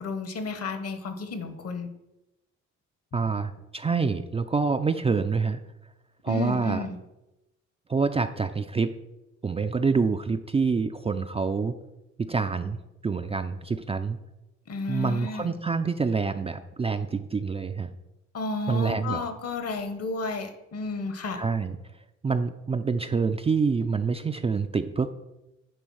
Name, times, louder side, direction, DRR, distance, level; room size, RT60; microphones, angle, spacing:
voice 1, 0.0-1.9 6.3-7.0 14.7-15.5 18.3-21.4, left 3 dB, 55° left, 9 dB, 1.2 m, -32 dB
voice 2, 3.1-5.6 6.2-6.8 7.9-8.9 9.4-11.8 12.2-12.8 13.0-14.2 14.9-17.9 18.7-19.2 21.4-21.8 22.2-25.1, right 4 dB, 20° right, 8 dB, 0.4 m, -26 dB
9.9 x 3.4 x 6.2 m, 0.95 s
cardioid pair, 90°, 30 cm